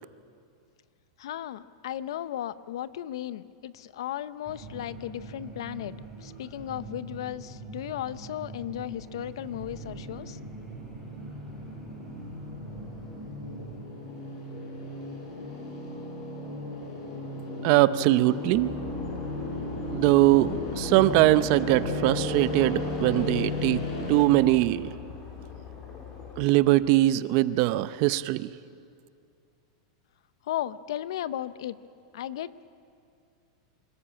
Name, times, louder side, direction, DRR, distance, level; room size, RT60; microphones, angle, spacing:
voice 1, 1.2-6.0 6.2-10.4 30.5-31.8 32.1-32.5, left 12 dB, 75° left, 16 dB, 0.7 m, -35 dB
sound 1, 4.4-13.8, right 3 dB, 5° right, 5.5 m, -43 dB
sound 2, 9.4-24.3, left 2 dB, 55° left, 5.4 m, -36 dB
voice 2, 17.6-18.7 19.9-24.9 26.4-28.5, right 16 dB, 50° right, 15 dB, 0.6 m, -22 dB
sound 3, 18.5-26.5, left 5 dB, 30° left, 3.7 m, -39 dB
25.0 x 14.0 x 8.9 m, 2.4 s
supercardioid pair, 150°, 3 cm